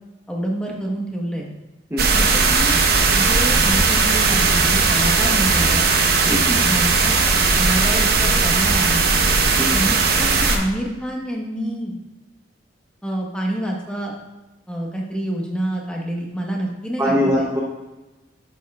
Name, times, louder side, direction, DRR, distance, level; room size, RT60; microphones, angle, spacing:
voice 1, 0.3-1.5 2.0-2.8 3.2-5.9 6.6-7.2 7.5-9.0 9.7-11.9 13.0-14.1 14.7-17.5, right 1 dB, 5° left, -1 dB, 1.1 m, -27 dB
sound 1, 2.0-10.6, right 4 dB, 55° right, 0.9 m, -17 dB
voice 2, 6.3-6.6 9.6-9.7 17.0-17.6, equal, 15° right, -3 dB, 0.8 m, -21 dB
11.0 x 7.0 x 2.4 m, 1.1 s
head